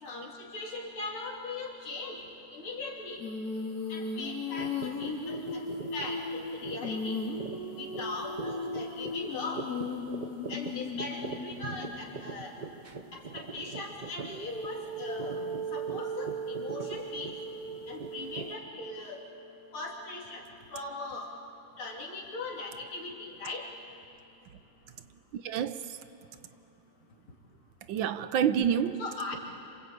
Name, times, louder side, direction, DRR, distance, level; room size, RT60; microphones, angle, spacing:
voice 1, 0.0-3.2 3.9-5.6 5.9-7.2 7.8-9.7 10.5-12.5 13.1-15.4 15.7-17.3 17.9-19.2 19.7-20.4 20.7-21.3 21.8-23.7 29.0-29.4, left 3 dB, 85° left, 3.7 m, -39 dB
Female singing, 3.2-12.1 14.3-18.5, left 1 dB, 45° left, 2.6 m, -37 dB
sound 1, 4.6-18.6, right 4 dB, 45° right, 0.6 m, -43 dB
voice 2, 8.4-8.9 25.3-26.0 27.9-29.1, right 8 dB, 70° right, 1.5 m, -29 dB
28.0 x 25.5 x 8.4 m
omnidirectional pair, 2.3 m